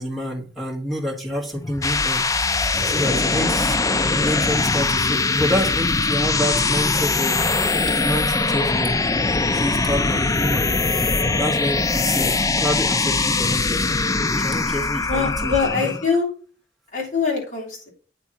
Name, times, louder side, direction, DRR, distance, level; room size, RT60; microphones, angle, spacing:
voice 1, 0.0-2.3 2.8-3.8 4.1-7.4 7.9-9.0 9.5-14.0 14.3-16.0, equal, ahead, -3 dB, 1.6 m, -27 dB
sound 1, 1.5-16.1, left 3 dB, 20° left, 0.4 m, -21 dB
voice 2, 15.1-16.3 16.9-17.9, left 5 dB, 45° left, -4 dB, 3.2 m, -23 dB
8.9 x 3.5 x 4.2 m, 0.38 s
head